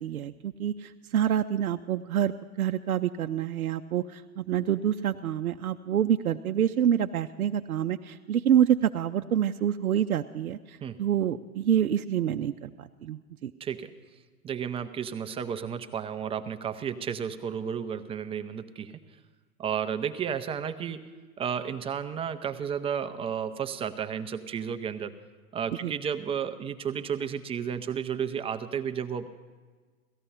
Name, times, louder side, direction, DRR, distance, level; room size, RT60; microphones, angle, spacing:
voice 1, 0.0-13.5 25.8-25.9, right 10 dB, 80° right, 6 dB, 0.6 m, -27 dB
voice 2, 13.6-13.9 14.4-19.0 19.6-25.2 25.5-29.3, right 7 dB, 15° right, 8 dB, 0.5 m, -32 dB
17.5 x 14.0 x 5.6 m, 1.4 s
figure-of-eight pair, 105°, 43 cm